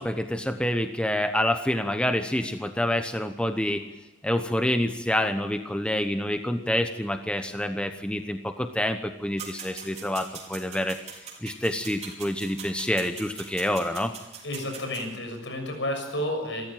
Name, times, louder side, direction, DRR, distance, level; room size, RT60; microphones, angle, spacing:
voice 1, 0.0-3.8 4.2-14.1, left 1 dB, 5° left, 7 dB, 0.9 m, -27 dB
sound 1, 9.4-15.0, right 6 dB, 35° right, 5.3 m, -42 dB
voice 2, 14.4-16.7, left 1 dB, 70° left, 4 dB, 6.9 m, -31 dB
28.0 x 14.0 x 9.1 m, 1.0 s
head